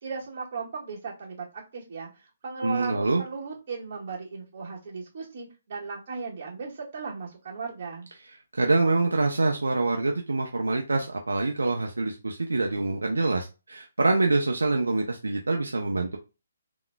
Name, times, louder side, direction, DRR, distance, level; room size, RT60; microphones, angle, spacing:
voice 1, 0.0-8.1, right 4 dB, 50° right, -3 dB, 1.7 m, -37 dB
voice 2, 2.6-3.2 8.5-16.2, right 3 dB, 90° right, 3 dB, 0.6 m, -25 dB
3.7 x 2.9 x 2.3 m, 0.29 s
hypercardioid pair, 150°, 0 cm